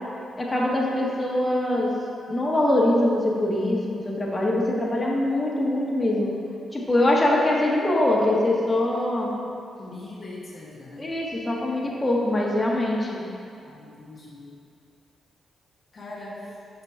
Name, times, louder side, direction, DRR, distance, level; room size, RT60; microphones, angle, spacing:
voice 1, 0.4-1.9 2.3-6.3 6.7-9.3 11.0-13.2, left 1 dB, 25° left, -3 dB, 1.4 m, -23 dB
voice 2, 9.8-11.1 13.6-14.6 15.9-16.4, left 2 dB, 50° left, -5 dB, 1.1 m, -41 dB
6.0 x 5.1 x 4.6 m, 2.5 s
supercardioid pair, 55°, 0 cm